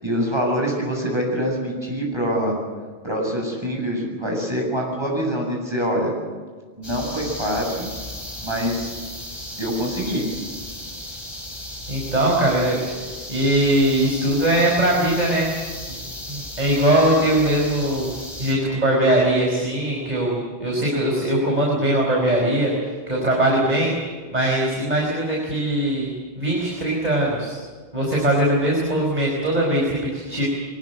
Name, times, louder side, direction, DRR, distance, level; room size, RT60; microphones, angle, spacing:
voice 1, 0.0-2.5 3.0-6.1 6.8-7.9 8.4-8.9 9.6-10.3, equal, 25° right, -1 dB, 8.1 m, -25 dB
sound 1, 6.8-18.5, left 1 dB, 25° left, 5.3 m, -35 dB
voice 2, 11.9-12.8 13.3-15.5 15.9-16.0 16.3-18.1 18.4-22.7 23.1-23.9 24.3-26.1 26.4-27.6 27.9-30.5, right 1 dB, 40° right, -2 dB, 5.1 m, -20 dB
24.0 x 20.5 x 8.2 m, 1.5 s
omnidirectional pair, 1.1 m